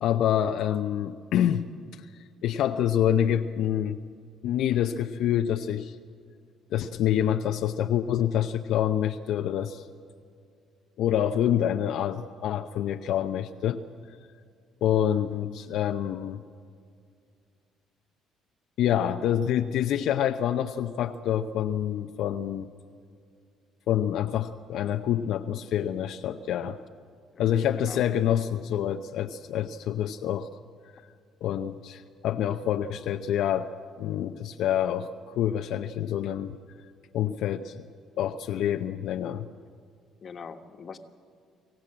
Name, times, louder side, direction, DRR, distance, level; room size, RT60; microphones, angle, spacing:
voice 1, 0.0-1.7 2.4-4.0 4.4-5.9 6.7-9.8 11.0-13.8 14.8-16.4 18.8-22.7 23.9-26.8 27.4-30.5 31.4-33.7 34.0-36.5 37.1-37.9 38.2-39.5, left 10 dB, 75° left, 6 dB, 0.6 m, -27 dB
voice 2, 40.2-41.0, left 6 dB, 40° left, 7 dB, 1.4 m, -42 dB
24.5 x 15.5 x 8.7 m, 2.2 s
cardioid pair, 110°, 0 cm